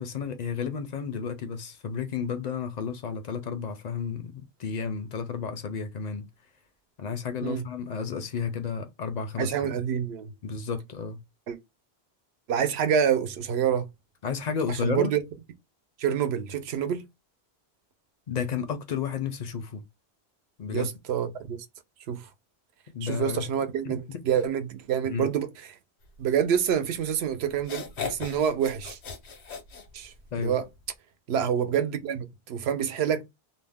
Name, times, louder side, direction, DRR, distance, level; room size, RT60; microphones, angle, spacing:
voice 1, 0.0-6.3 7.0-9.5 10.4-11.2 14.2-15.1 18.3-19.8 20.6-20.9 22.9-23.4 23.8-23.9 25.1-25.3 30.3-30.5, left 6 dB, 55° left, 0.5 m, -32 dB
voice 2, 9.4-10.3 11.5-11.6 12.5-13.9 14.7-15.2 16.0-17.0 20.7-21.7 22.1-22.3 23.0-25.8 26.2-29.0 29.9-30.7 31.3-33.2, right 8 dB, 80° right, 0.8 m, -27 dB
sound 1, 27.0-27.1 27.6-30.4, left 6 dB, 85° left, 1.1 m, -37 dB
2.5 x 2.1 x 3.4 m
omnidirectional pair, 1.1 m